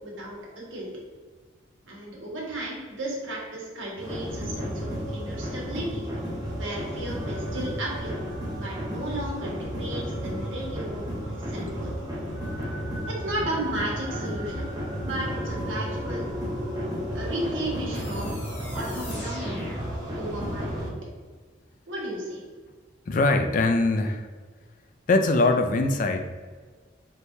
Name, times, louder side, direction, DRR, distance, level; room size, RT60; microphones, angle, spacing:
voice 1, 0.0-0.9 1.9-6.1 6.5-8.2 8.5-11.9 13.1-14.7 15.0-16.3 17.1-18.4 18.7-19.6 20.2-20.9 21.9-22.4, right 1 dB, 90° right, -3 dB, 1.4 m, -34 dB
sound 1, 4.0-20.9, equal, 20° right, 0.7 m, -32 dB
sound 2, 17.9-20.8, left 2 dB, 75° left, 1.2 m, -44 dB
voice 2, 23.1-24.3 25.1-26.2, left 2 dB, 45° left, 6 dB, 0.3 m, -22 dB
4.6 x 3.3 x 2.7 m, 1.5 s
head